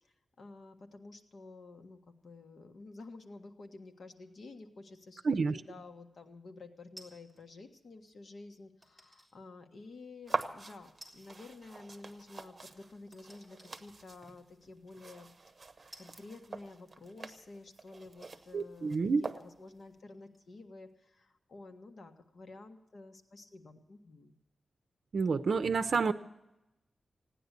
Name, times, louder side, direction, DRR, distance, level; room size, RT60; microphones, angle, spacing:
voice 1, 0.0-15.3 16.0-19.0 19.3-24.3, left 3 dB, 60° left, 5 dB, 1.5 m, -51 dB
voice 2, 5.2-5.6 18.5-19.2 25.1-26.1, right 4 dB, 65° right, 8 dB, 0.6 m, -29 dB
sound 1, 7.0-7.5 8.8-9.3 9.9-10.0 11.0-11.5 11.7-11.8 13.1-13.7 14.6-14.7 15.9-17.0 17.7-17.8 18.1-20.6 20.9-21.0, right 1 dB, 5° left, 3.8 m, -57 dB
sound 2, 10.3-19.8, right 3 dB, 35° right, 1.1 m, -44 dB
17.0 x 10.0 x 8.1 m, 0.93 s
wide cardioid pair, 125°, 0 cm